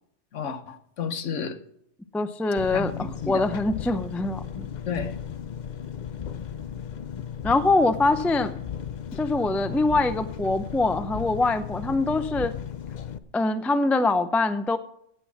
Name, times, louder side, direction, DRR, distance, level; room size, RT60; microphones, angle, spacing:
voice 1, 0.3-1.6 2.7-3.4 4.8-5.2, left 6 dB, 75° left, 1.3 m, -31 dB
voice 2, 2.1-4.7 7.4-8.5 9.1-12.5 13.3-14.8, left 2 dB, ahead, 0.3 m, -24 dB
Engine, 2.6-13.2, left 8 dB, 50° left, 0.6 m, -36 dB
17.0 x 6.2 x 6.1 m
omnidirectional pair, 1.3 m